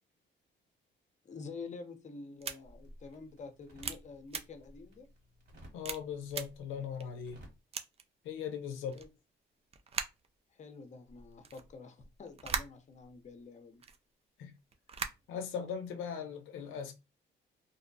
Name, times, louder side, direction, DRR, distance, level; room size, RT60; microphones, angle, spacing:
voice 1, 1.2-5.1 8.9-9.1 10.5-13.8, left 4 dB, 35° left, 0.6 m, -48 dB
sound 1, 2.4-2.5 3.1-3.2 3.8-4.0 4.3-4.4 5.0-5.1 5.8-6.0 6.3-6.4 7.0-7.1 7.7-8.0 8.9-9.1 9.7-10.3 11.1-13.3 13.7-14.0 14.7-15.4, right 5 dB, 30° right, 0.4 m, -39 dB
sound 2, 2.6-7.6, equal, 55° right, 1.7 m, -56 dB
voice 2, 5.7-7.4 8.2-9.0 14.4-14.5 15.3-16.9, left 7 dB, 90° left, 0.5 m, -39 dB
2.6 x 2.1 x 2.6 m
cardioid pair, 90°, 20 cm